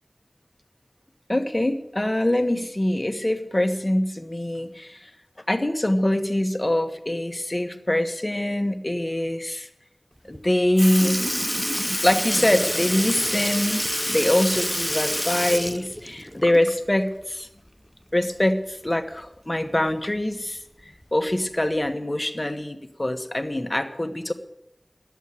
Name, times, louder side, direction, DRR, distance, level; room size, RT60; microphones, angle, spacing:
voice 1, 1.3-5.1 5.5-9.7 10.2-11.2 12.0-17.5 18.1-20.6 21.1-24.3, left 1 dB, 30° left, 6 dB, 1.4 m, -24 dB
Sink (filling or washing) / Liquid, 10.3-10.4 10.8-16.9 17.2-17.3 18.9-19.0 19.9-20.0 20.8-21.0 21.8-21.9, equal, 5° left, 0.4 m, -27 dB
11.0 x 8.2 x 9.9 m, 0.84 s
wide cardioid pair, 55°, 0 cm